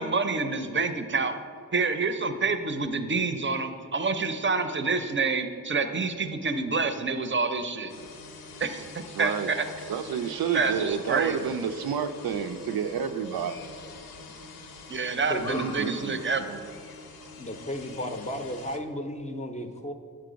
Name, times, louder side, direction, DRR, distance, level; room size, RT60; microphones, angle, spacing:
voice 1, 0.0-1.4 1.7-7.9 8.6-8.9 9.2-9.7 10.5-11.5 14.9-16.6, right 4 dB, 35° right, 8 dB, 0.5 m, -27 dB
sound 1, 7.9-18.8, left 4 dB, 85° left, 0.7 m, -44 dB
voice 2, 9.1-9.5 9.9-13.6 15.6-16.2, right 7 dB, 90° right, 8 dB, 0.5 m, -29 dB
voice 3, 15.3-15.8 17.4-19.9, equal, 20° left, 6 dB, 0.5 m, -34 dB
7.6 x 4.7 x 5.0 m, 2.2 s
wide cardioid pair, 85°, 35 cm